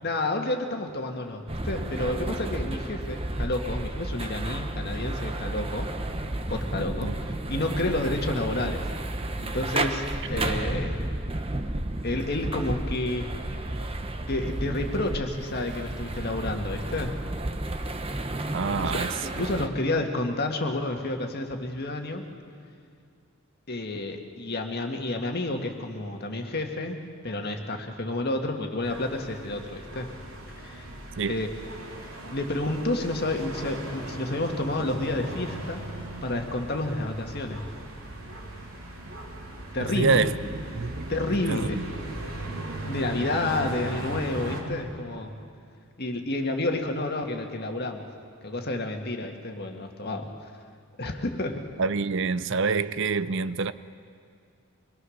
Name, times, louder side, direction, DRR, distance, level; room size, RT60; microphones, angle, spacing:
voice 1, 0.0-5.9 6.5-8.9 9.4-11.1 12.0-13.3 14.3-17.2 18.7-18.9 19.2-22.2 23.7-27.0 27.2-30.1 30.6-30.9 31.3-31.5 32.3-35.8 36.2-37.6 39.7-40.3 41.1-41.8 42.9-45.4 46.0-48.1 48.4-50.3 51.0-51.7, left 2 dB, 50° left, 1.8 m, -30 dB
sound 1, 1.5-19.7, right 1 dB, 25° right, 1.0 m, -32 dB
voice 2, 18.5-19.1 31.2-31.4 40.0-40.3 40.8-41.1 41.5-41.8 51.8-53.7, right 4 dB, 60° right, 0.6 m, -26 dB
sound 2, 28.8-44.6, right 1 dB, 85° right, 3.5 m, -38 dB
25.0 x 21.5 x 6.5 m
head